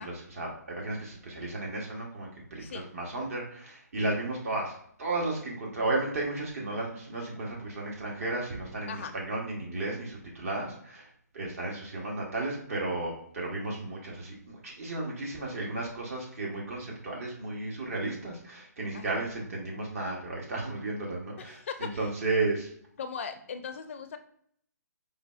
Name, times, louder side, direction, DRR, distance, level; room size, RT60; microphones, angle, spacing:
voice 1, 0.0-22.7, right 2 dB, 50° right, -2 dB, 0.9 m, -34 dB
voice 2, 21.4-22.0 23.0-24.2, left 6 dB, 45° left, 7 dB, 0.5 m, -38 dB
5.0 x 2.1 x 2.4 m, 0.64 s
figure-of-eight pair, 135°, 10 cm